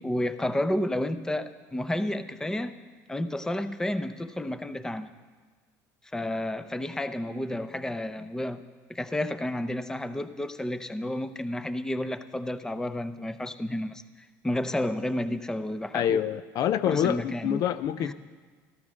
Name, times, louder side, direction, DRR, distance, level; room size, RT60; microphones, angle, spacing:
voice 1, 0.0-2.7 3.1-5.1 6.1-8.6 8.9-14.0 14.4-16.2 16.8-17.7 18.0-18.1, left 1 dB, 10° left, 11 dB, 0.7 m, -31 dB
voice 2, 15.9-18.1, left 10 dB, 55° left, 13 dB, 0.5 m, -26 dB
13.5 x 13.0 x 6.3 m, 1.4 s
cardioid pair, 115°, 8 cm